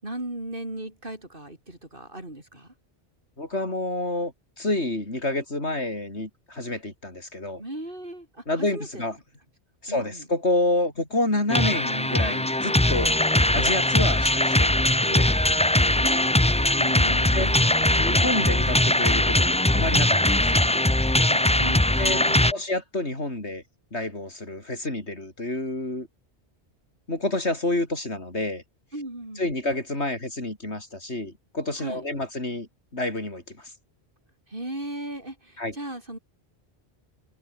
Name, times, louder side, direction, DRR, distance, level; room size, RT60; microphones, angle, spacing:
voice 1, 0.0-2.7 7.6-9.1 9.9-10.3 16.0-18.0 21.3-22.6 28.9-29.5 31.8-32.1 34.5-36.2, right 1 dB, 50° right, 6.2 m, -37 dB
voice 2, 3.4-7.6 8.5-9.2 9.8-13.2 13.5-14.7 15.1-15.6 17.3-17.5 18.0-20.6 22.0-22.2 22.5-23.6 23.9-26.1 27.1-28.6 29.4-33.7 35.6-35.7, left 2 dB, 75° left, 5.8 m, -29 dB
sound 1, 11.5-22.5, left 1 dB, 10° left, 0.5 m, -21 dB
Speech / Wind, 14.7-19.6, left 1 dB, 60° left, 7.4 m, -46 dB
omnidirectional pair, 1.1 m